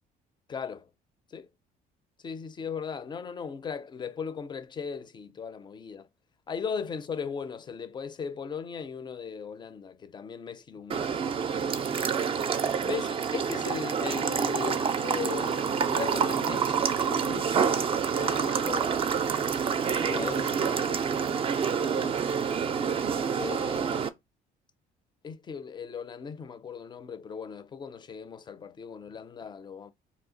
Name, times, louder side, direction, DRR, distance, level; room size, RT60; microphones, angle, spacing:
voice 1, 0.5-0.9 1.3-1.5 2.2-6.1 6.5-11.2 12.8-19.2 19.9-21.3 21.7-22.2 23.4-24.1 25.2-29.9, left 6 dB, 25° left, 0.4 m, -38 dB
sound 1, 10.9-24.1, right 6 dB, 35° right, 0.4 m, -27 dB
2.8 x 2.3 x 3.7 m
cardioid pair, 110°, 17 cm